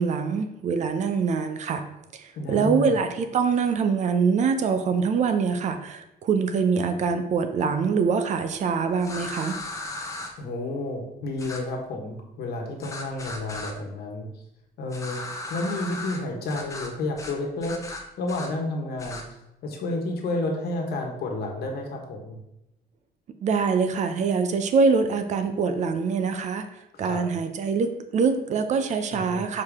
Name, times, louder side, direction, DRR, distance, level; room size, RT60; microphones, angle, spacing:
voice 1, 0.0-1.8 2.1-9.5 23.4-26.7 27.0-29.6, right 5 dB, 45° right, 8 dB, 0.6 m, -24 dB
voice 2, 2.3-3.0 10.4-14.3 14.8-15.2 15.5-17.8 18.2-19.2 19.6-22.3 26.9-27.2 29.1-29.4, left 2 dB, 70° left, 1 dB, 1.4 m, -30 dB
sound 1, 9.0-10.3 11.4-11.6 12.8-13.7 14.9-16.2 16.5-16.9 17.2-17.3 17.6-18.5 19.0-19.2, left 2 dB, 20° left, 0.7 m, -36 dB
6.6 x 4.7 x 3.6 m, 0.87 s
cardioid pair, 175°, 17 cm